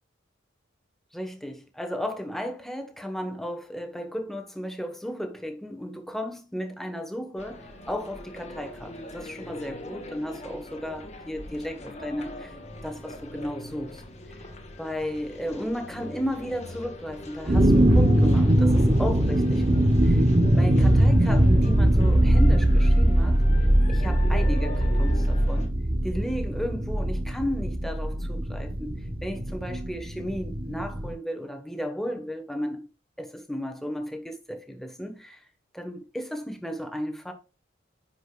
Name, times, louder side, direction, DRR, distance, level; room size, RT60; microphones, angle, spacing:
voice 1, 1.1-12.5 12.8-14.0 14.8-20.2 20.6-23.4 23.9-25.7 26.0-29.0 29.2-32.9 33.2-35.4 35.7-37.3, equal, ahead, 1.1 m, -34 dB
sound 1, 7.4-25.7, left 1 dB, 35° left, 1.3 m, -41 dB
sound 2, 17.5-31.1, right 1 dB, 30° right, 0.8 m, -21 dB
10.0 x 5.1 x 2.3 m
head